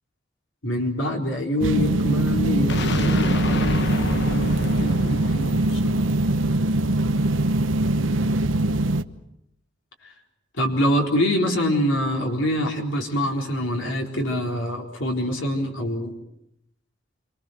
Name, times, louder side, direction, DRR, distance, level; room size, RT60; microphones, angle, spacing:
voice 1, 0.6-6.0 10.6-16.1, equal, 85° left, 2 dB, 4.1 m, -25 dB
sound 1, 1.6-9.0, right 1 dB, 85° right, 1.0 m, -22 dB
sound 2, 2.7-6.6, left 2 dB, 65° left, 1.2 m, -30 dB
28.5 x 25.5 x 6.5 m, 0.78 s
head